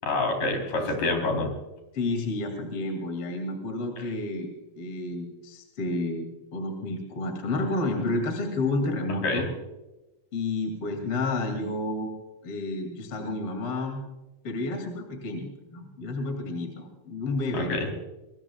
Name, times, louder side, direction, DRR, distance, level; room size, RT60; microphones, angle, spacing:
voice 1, 0.0-1.5 9.2-9.5 17.5-17.9, left 2 dB, 60° left, 3 dB, 5.0 m, -27 dB
voice 2, 0.6-0.9 1.9-9.5 10.3-12.1 12.4-14.0 14.4-17.9, left 2 dB, 40° left, 4 dB, 2.9 m, -31 dB
25.5 x 21.5 x 2.3 m, 1.0 s
omnidirectional pair, 4.2 m